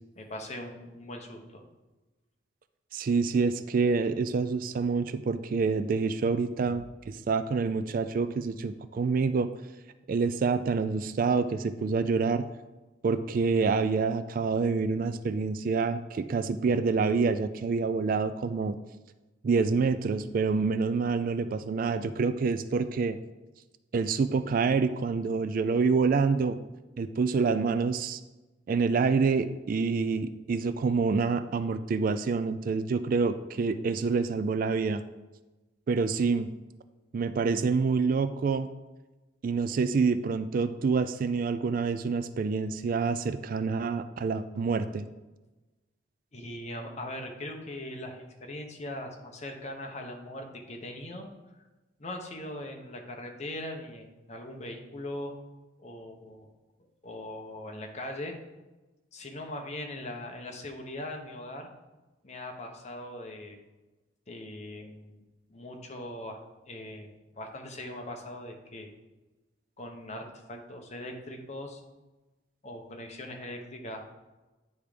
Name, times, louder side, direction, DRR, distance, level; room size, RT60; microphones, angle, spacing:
voice 1, 0.1-1.6 6.6-6.8 46.3-51.3 51.6-51.7 52.0-55.4 55.8-56.5 57.0-58.4 59.1-61.7 62.2-63.6 64.3-65.2 65.5-66.4 66.6-68.9 69.8-71.8 72.6-74.1, left 1 dB, 40° left, 3 dB, 1.0 m, -40 dB
voice 2, 2.9-9.5 10.1-12.4 13.0-18.8 19.4-23.2 23.9-26.6 27.0-28.2 28.7-35.0 35.9-36.5 37.1-38.7 39.4-45.1, right 4 dB, 50° right, 12 dB, 0.3 m, -27 dB
9.6 x 3.6 x 5.0 m, 1.1 s
head